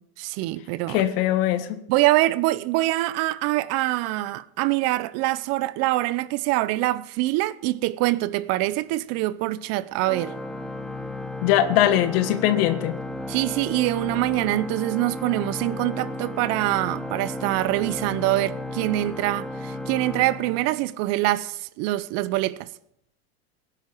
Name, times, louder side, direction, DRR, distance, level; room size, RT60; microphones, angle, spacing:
voice 1, 0.2-1.0 1.9-10.3 13.3-22.7, right 17 dB, 50° right, 0.7 m, -24 dB
voice 2, 0.9-1.8 11.4-13.0, left 12 dB, 60° left, 1.6 m, -21 dB
Organ, 10.0-21.2, left 2 dB, ahead, 0.9 m, -34 dB
17.5 x 10.5 x 4.6 m
supercardioid pair, 115°, 33 cm